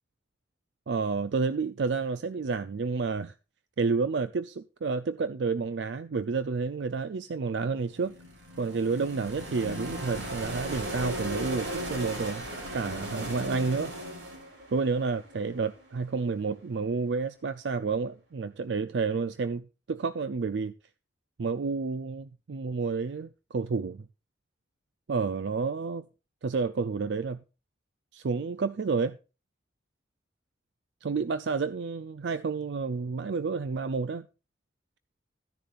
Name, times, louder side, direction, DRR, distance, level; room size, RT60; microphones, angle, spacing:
voice 1, 0.9-3.3 3.8-8.1 8.6-12.5 12.7-13.9 14.7-20.7 21.4-24.0 25.1-26.1 26.4-27.4 28.1-29.2 31.0-34.3, right 4 dB, 70° right, 0.4 m, -30 dB
sound 1, 7.9-16.0, equal, 90° right, 5.3 m, -37 dB
14.0 x 10.5 x 2.5 m
head